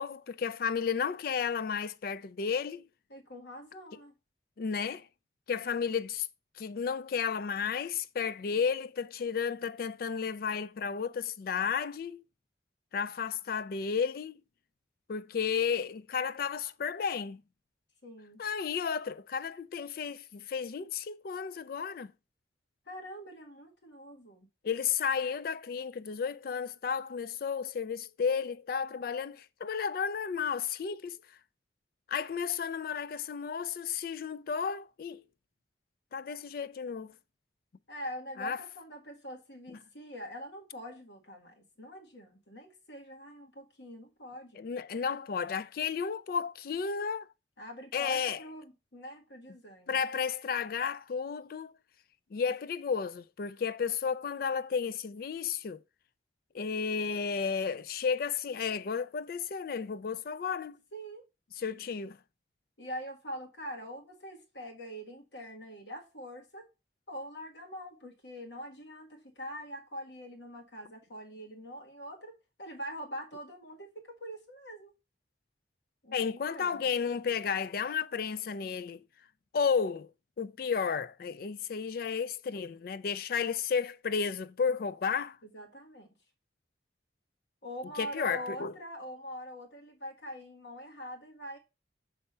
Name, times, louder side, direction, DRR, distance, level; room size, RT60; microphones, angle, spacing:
voice 1, 0.0-2.8 4.6-5.1 5.5-6.3 6.6-12.2 12.9-14.3 15.1-17.4 18.4-22.1 24.6-31.2 32.1-35.2 36.1-37.1 38.4-38.6 44.6-47.3 47.9-48.4 49.9-51.7 52.3-55.8 56.5-60.8 61.6-62.2 76.1-79.0 79.5-80.1 80.4-85.4 88.0-88.7, left 6 dB, 50° left, 0.3 m, -33 dB
voice 2, 3.1-4.1 18.0-18.4 22.8-24.5 37.9-44.7 47.6-50.0 60.9-61.3 61.7-61.8 62.8-66.7 67.1-74.9 76.0-76.9 85.4-86.1 87.6-91.6, equal, 70° left, 1.7 m, -44 dB
6.7 x 3.5 x 5.3 m
head